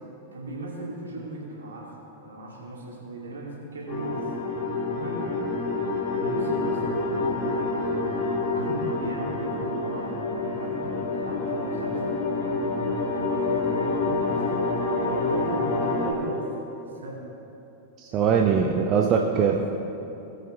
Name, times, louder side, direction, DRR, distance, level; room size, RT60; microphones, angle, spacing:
voice 1, 0.3-4.3 4.9-5.5 6.1-7.9 8.4-14.7 15.0-16.6 16.8-17.2 18.1-18.5 19.1-19.5, right 2 dB, 70° right, -3 dB, 2.5 m, -37 dB
sound 1, 3.9-16.1, left 3 dB, 45° left, 2.1 m, -27 dB
voice 2, 18.0-19.7, right 6 dB, 35° right, 2 dB, 0.6 m, -22 dB
19.0 x 8.0 x 3.1 m, 2.9 s
figure-of-eight pair, 90°, 0 cm